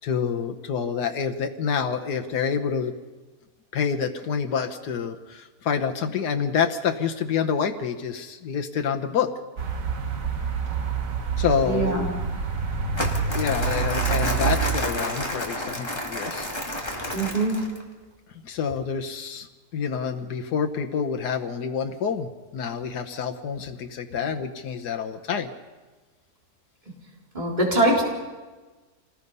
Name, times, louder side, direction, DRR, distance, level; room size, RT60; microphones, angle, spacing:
voice 1, 0.0-2.9 3.7-9.3 11.4-12.0 13.3-16.5 18.4-19.5 19.7-25.5, left 6 dB, 85° left, 5 dB, 1.6 m, -27 dB
sound 1, 9.6-14.8, right 6 dB, 55° right, 1.8 m, -27 dB
voice 2, 11.6-12.1 17.1-17.6 27.3-28.0, right 2 dB, 25° right, -2 dB, 4.0 m, -22 dB
Crumpling crinkling, 12.9-17.8, left 1 dB, 15° left, 2.4 m, -30 dB
27.5 x 19.5 x 5.5 m, 1.3 s
omnidirectional pair, 1.7 m